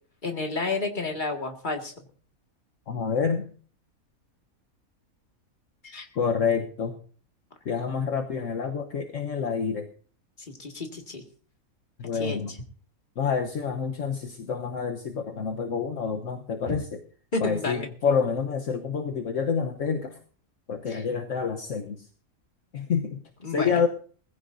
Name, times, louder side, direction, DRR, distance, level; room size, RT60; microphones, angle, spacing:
voice 1, 0.2-1.9 5.8-6.1 10.4-11.2 12.1-12.6 17.3-17.9 20.9-21.0 23.4-23.8, left 3 dB, 35° left, 3 dB, 2.1 m, -31 dB
voice 2, 2.9-3.5 6.1-7.0 7.6-9.9 12.0-12.5 13.2-16.8 17.4-20.2 20.7-22.1 22.7-23.9, left 6 dB, 60° left, 4 dB, 1.3 m, -28 dB
21.0 x 15.0 x 2.7 m, 0.43 s
omnidirectional pair, 1.5 m